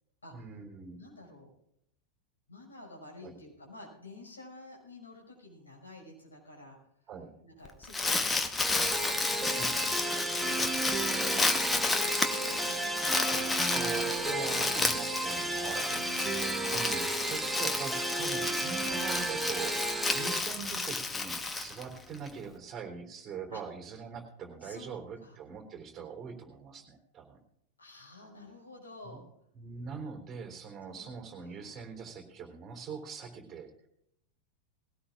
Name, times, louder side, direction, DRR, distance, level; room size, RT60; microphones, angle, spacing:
voice 1, 0.3-1.0 3.2-3.3 7.1-7.3 9.6-10.0 13.7-16.0 16.6-27.4 29.0-29.2 29.5-33.7, right 5 dB, 25° right, 3 dB, 3.5 m, -42 dB
voice 2, 1.0-1.5 2.5-6.8 7.4-8.3 8.7-10.6 11.1-14.1 14.7-14.8 15.1-15.2 15.9-16.6 20.1-20.4 23.5-23.6 24.6-25.4 27.8-29.2 30.9-31.9, left 2 dB, 75° left, -1 dB, 5.6 m, -50 dB
Crumpling crinkling, 7.6-22.3, left 3 dB, 10° left, 1.1 m, -32 dB
sound 1, 8.6-20.4, right 2 dB, 5° right, 1.1 m, -33 dB
20.0 x 17.0 x 2.5 m, 0.78 s
figure-of-eight pair, 90°, 0 cm